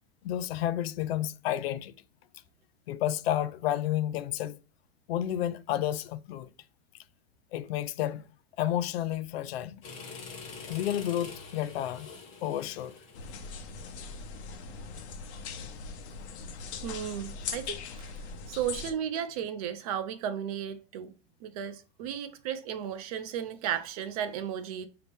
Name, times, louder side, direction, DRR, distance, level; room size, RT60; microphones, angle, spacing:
voice 1, 0.2-1.9 2.9-4.6 5.1-6.5 7.5-8.3 8.6-9.8 10.7-12.1 12.4-13.0, left 12 dB, 70° left, 0.5 m, -31 dB
sound 1, 9.8-14.7, left 4 dB, 20° left, 0.8 m, -46 dB
sound 2, 13.1-18.9, left 5 dB, 85° left, 0.8 m, -40 dB
voice 2, 16.8-18.1 18.5-21.1 21.4-24.9, right 9 dB, 35° right, 0.4 m, -34 dB
4.9 x 2.9 x 3.4 m
supercardioid pair, 165°, 32 cm